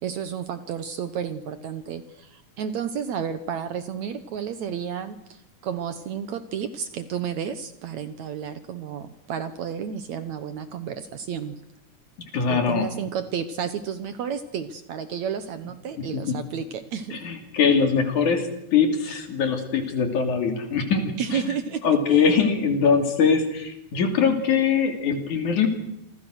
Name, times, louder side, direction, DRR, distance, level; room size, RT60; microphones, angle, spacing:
voice 1, 0.0-11.6 12.5-17.2 21.2-21.9 22.1-22.2, right 7 dB, 65° right, 11 dB, 2.1 m, -31 dB
voice 2, 12.3-12.9 16.0-16.4 17.1-21.5 21.8-25.7, left 6 dB, 60° left, 6 dB, 4.0 m, -22 dB
28.0 x 24.0 x 6.4 m, 0.82 s
omnidirectional pair, 4.1 m